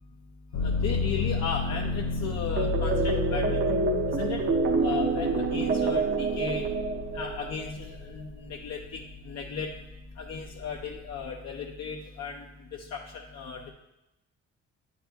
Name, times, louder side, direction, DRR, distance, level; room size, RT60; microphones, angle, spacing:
sound 1, 0.5-8.3 8.8-9.6, left 4 dB, 80° left, 0.9 m, -32 dB
voice 1, 0.6-3.6 4.2-4.4 4.8-6.6 7.1-8.8 9.3-9.7 10.2-12.4 12.9-13.0 13.3-13.6, left 6 dB, 60° left, 0 dB, 0.7 m, -35 dB
sound 2, 2.6-7.7, right 3 dB, 40° right, 0.7 m, -27 dB
8.9 x 4.1 x 2.8 m, 0.89 s
cardioid pair, 90°, 30 cm